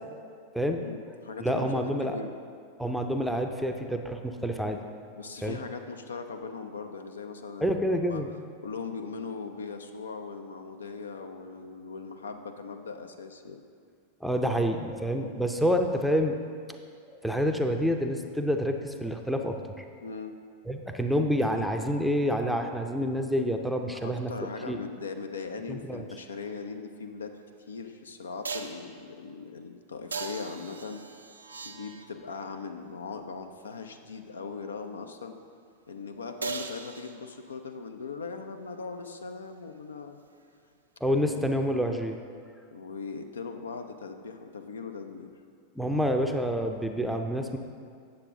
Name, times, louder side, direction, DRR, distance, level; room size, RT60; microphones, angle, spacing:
voice 1, 0.8-2.3 4.3-4.6 5.2-7.8 8.1-8.2 8.6-13.6 15.1-15.4 20.0-20.4 23.9-27.3 27.7-31.0 31.6-35.4 35.9-40.2 41.3-41.6 42.7-45.3, left 4 dB, 70° left, 6 dB, 0.5 m, -39 dB
voice 2, 1.4-2.2 2.8-4.8 5.4-5.6 7.6-8.3 14.2-16.4 17.1-19.8 20.7-24.3 24.7-24.8 25.7-26.0 41.0-42.2 45.8-47.6, equal, ahead, 4 dB, 0.5 m, -28 dB
sound 1, 27.4-27.5 28.4-28.9 30.1-32.3 36.4-37.5 41.4-41.5, right 4 dB, 75° right, 0.5 m, -38 dB
8.7 x 7.3 x 3.6 m, 2.2 s
figure-of-eight pair, 90°, 0 cm